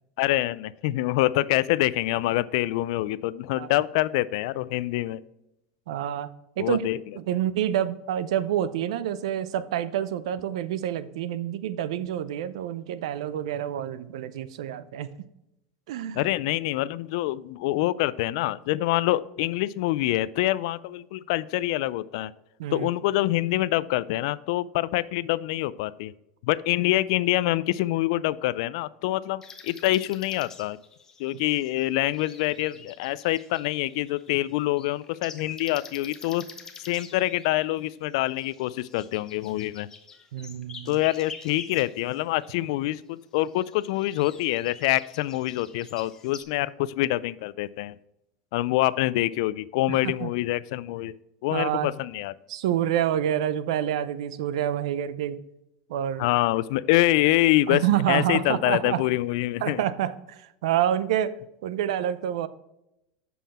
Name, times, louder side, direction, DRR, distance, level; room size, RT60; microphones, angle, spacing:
voice 1, 0.2-5.2 6.6-7.0 16.1-22.3 22.7-26.1 26.4-30.8 31.2-36.4 36.8-39.9 40.9-47.9 48.5-51.1 51.4-52.3 56.2-57.8 58.1-59.8, left 16 dB, 65° left, 18 dB, 0.3 m, -25 dB
voice 2, 5.9-6.3 6.6-6.8 7.2-15.1 15.9-16.3 22.6-22.9 40.3-41.0 49.9-50.3 51.5-51.9 52.5-55.4 55.9-56.3 57.7-59.0 59.6-62.5, right 11 dB, 85° right, 15 dB, 0.5 m, -28 dB
sound 1, 29.4-42.6 43.3-46.4, left 5 dB, 20° left, 0.8 m, -47 dB
7.4 x 5.5 x 4.2 m, 0.86 s
supercardioid pair, 150°, 3 cm